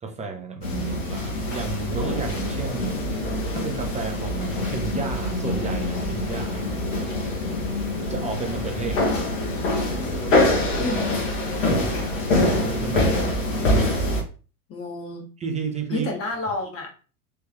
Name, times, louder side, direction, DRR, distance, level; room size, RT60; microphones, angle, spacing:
voice 1, 0.0-3.0 3.5-7.4 8.1-9.2 11.6-12.0 12.3-13.5 15.4-16.1, right 4 dB, 15° right, 0.7 m, -32 dB
sound 1, 0.6-14.2, left 1 dB, 60° left, 1.9 m, -25 dB
voice 2, 14.7-15.2 15.9-16.9, left 2 dB, 30° left, 1.7 m, -29 dB
4.8 x 3.2 x 3.1 m
figure-of-eight pair, 85°, 45 cm